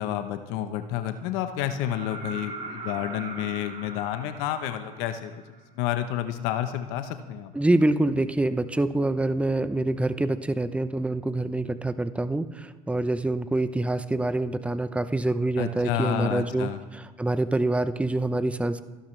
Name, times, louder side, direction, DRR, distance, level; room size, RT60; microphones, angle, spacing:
voice 1, 0.0-5.3 5.7-7.5 15.6-16.8, left 11 dB, 75° left, 9 dB, 1.0 m, -30 dB
sound 1, 1.8-5.6 7.5-7.6, right 3 dB, 35° right, 3.2 m, -40 dB
voice 2, 7.5-18.8, right 2 dB, 5° right, 12 dB, 0.7 m, -26 dB
27.5 x 11.5 x 3.3 m, 1.3 s
supercardioid pair, 90°, 20 cm